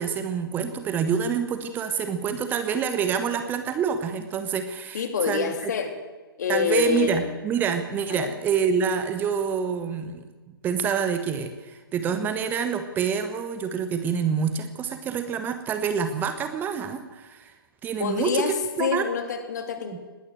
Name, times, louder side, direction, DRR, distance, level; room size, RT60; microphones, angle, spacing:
voice 1, 0.0-5.7 6.5-17.6 17.8-18.5 18.8-19.1 19.9-20.0, right 7 dB, 15° right, 9 dB, 1.3 m, -27 dB
voice 2, 4.9-5.9 6.4-7.3 8.1-8.3 18.0-20.0, left 6 dB, 50° left, 6 dB, 3.5 m, -26 dB
20.0 x 18.0 x 7.8 m, 1.3 s
figure-of-eight pair, 125°, 12 cm